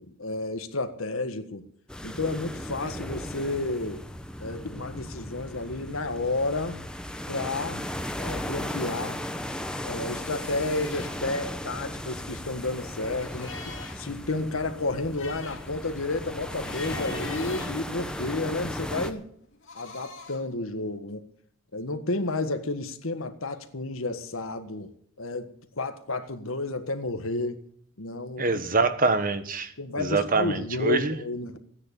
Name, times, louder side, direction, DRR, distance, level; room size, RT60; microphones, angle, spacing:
voice 1, 0.2-1.6 2.0-4.1 4.4-6.8 7.3-7.9 8.2-9.3 9.8-19.2 19.8-21.2 21.7-24.9 25.2-27.6 28.0-28.6 29.8-31.6, left 2 dB, 85° left, 1.6 m, -31 dB
sound 1, 1.9-19.1, left 1 dB, 5° left, 1.0 m, -36 dB
sound 2, 8.7-9.8 10.1-11.2 12.0-14.1 14.5-14.6 14.9-18.5 19.4-20.5, left 3 dB, 70° left, 2.7 m, -44 dB
voice 2, 28.4-29.7 30.0-31.2, right 3 dB, 40° right, 1.3 m, -25 dB
15.5 x 9.9 x 8.4 m
head